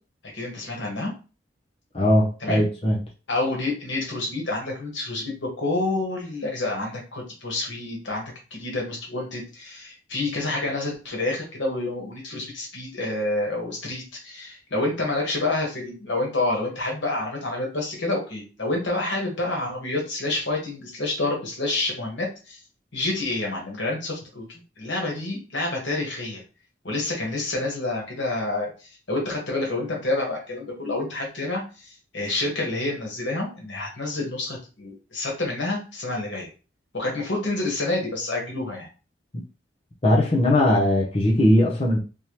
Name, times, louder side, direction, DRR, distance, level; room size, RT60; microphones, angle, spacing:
voice 1, 0.3-1.1 2.4-2.7 3.3-22.6 22.9-26.4 26.8-28.7 29.1-36.5 36.9-38.9, left 2 dB, 85° left, 1.5 m, -28 dB
voice 2, 1.9-3.0 40.0-42.0, left 1 dB, 35° left, 0.7 m, -19 dB
3.5 x 2.8 x 3.0 m
head